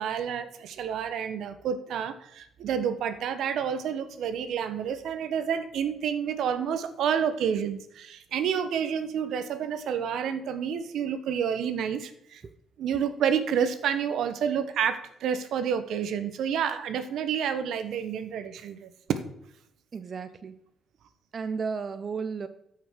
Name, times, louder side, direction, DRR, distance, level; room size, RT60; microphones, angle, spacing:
voice 1, 0.0-12.4 12.8-19.2, right 8 dB, 75° right, 11 dB, 1.2 m, -29 dB
voice 2, 19.9-20.6 21.3-22.5, right 5 dB, 45° right, 11 dB, 0.8 m, -33 dB
13.0 x 6.1 x 6.4 m, 0.74 s
cardioid pair, 90°, 0 cm